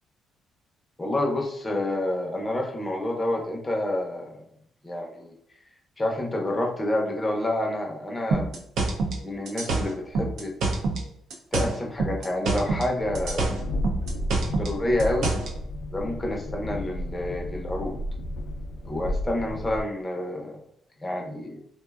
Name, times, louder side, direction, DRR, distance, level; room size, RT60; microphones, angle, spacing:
voice 1, 1.0-4.4 4.8-5.3 6.0-8.5 9.2-10.5 11.5-13.5 14.4-15.3 15.9-18.0 18.9-20.6 21.0-21.6, left 1 dB, 20° left, 0 dB, 0.6 m, -28 dB
sound 1, 8.3-11.0 11.3-12.9 13.1-15.5, right 3 dB, 80° right, 0.5 m, -26 dB
Train, 13.0-19.8, left 1 dB, 70° left, 0.3 m, -33 dB
2.5 x 2.1 x 2.3 m, 0.68 s
cardioid pair, 90°, 0 cm